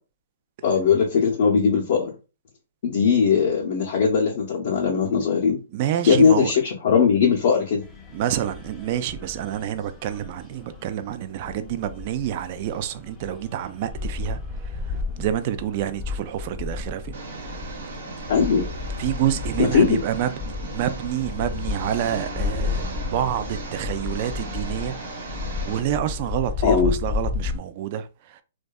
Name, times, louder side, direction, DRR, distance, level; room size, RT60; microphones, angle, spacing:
voice 1, 0.6-2.1 2.8-5.6 6.1-6.5 6.8-7.8 18.3-18.7 19.6-20.0 26.6-26.9, left 6 dB, 55° left, 0.6 m, -19 dB
voice 2, 5.7-6.5 8.1-17.8 18.9-20.4 20.7-24.9 25.6-28.4, right 11 dB, 40° right, 0.3 m, -28 dB
sound 1, 7.8-27.6, left 4 dB, 10° left, 0.5 m, -33 dB
Engine, 17.1-25.8, right 2 dB, 70° right, 1.0 m, -36 dB
2.6 x 2.2 x 2.2 m
hypercardioid pair, 145°, 0 cm